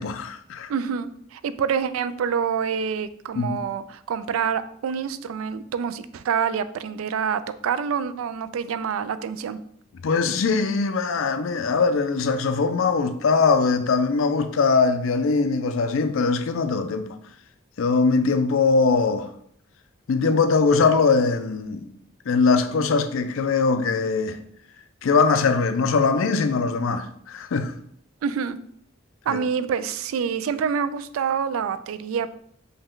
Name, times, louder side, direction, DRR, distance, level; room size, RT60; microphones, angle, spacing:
voice 1, 0.0-0.7 3.4-3.6 10.0-17.1 17.8-19.3 20.1-21.9 22.3-24.4 25.0-27.7 29.3-29.4, left 4 dB, 75° left, 0.4 m, -21 dB
voice 2, 0.7-9.6 28.2-28.6 29.3-32.3, right 7 dB, 85° right, 0.3 m, -27 dB
5.4 x 2.2 x 3.7 m
head